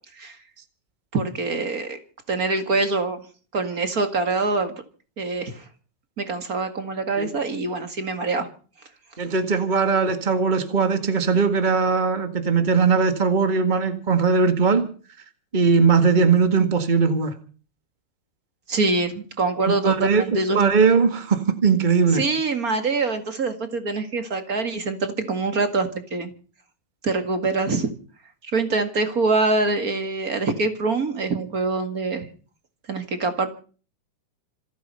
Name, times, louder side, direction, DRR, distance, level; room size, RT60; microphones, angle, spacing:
voice 1, 1.1-2.0 2.3-3.2 3.5-4.7 5.2-5.6 6.2-8.5 18.7-20.6 22.1-26.3 27.0-27.9 28.4-32.3 32.9-33.5, right 3 dB, 35° right, 8 dB, 1.5 m, -24 dB
voice 2, 9.2-14.9 15.5-17.3 19.8-22.2, right 5 dB, 65° right, 8 dB, 0.4 m, -19 dB
27.0 x 9.4 x 5.5 m, 0.40 s
omnidirectional pair, 4.2 m